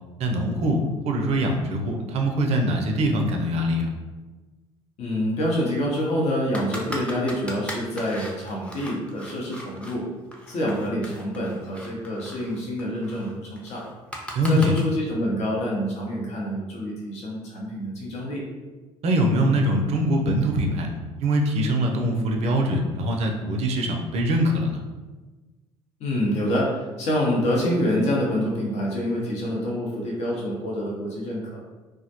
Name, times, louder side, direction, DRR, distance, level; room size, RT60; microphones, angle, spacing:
voice 1, 0.2-0.8 1.0-3.9 14.3-14.7 19.0-20.9 21.2-24.8, right 1 dB, 50° right, 2 dB, 0.5 m, -23 dB
voice 2, 5.0-10.1 10.5-13.9 14.5-18.4 26.0-31.6, equal, 50° left, -3 dB, 0.6 m, -26 dB
sound 1, 6.5-10.0 10.3-14.8, equal, 10° left, 0.5 m, -38 dB
2.2 x 2.0 x 2.7 m, 1.3 s
hypercardioid pair, 55°, 14 cm